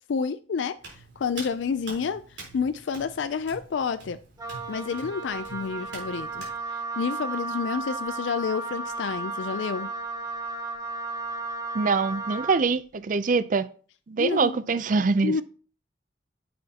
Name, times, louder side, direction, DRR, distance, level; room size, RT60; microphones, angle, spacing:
voice 1, 0.1-4.2 4.7-9.9 14.2-14.6 15.2-15.4, left 5 dB, 75° left, 0.4 m, -29 dB
Hands, 0.8-6.5, right 3 dB, 65° right, 3.8 m, -45 dB
Wind instrument woodwind instrument, 4.4-12.7, right 3 dB, 20° right, 1.2 m, -34 dB
voice 2, 11.7-13.7 14.1-15.3, right 4 dB, 45° right, 0.5 m, -24 dB
9.9 x 7.7 x 2.8 m
head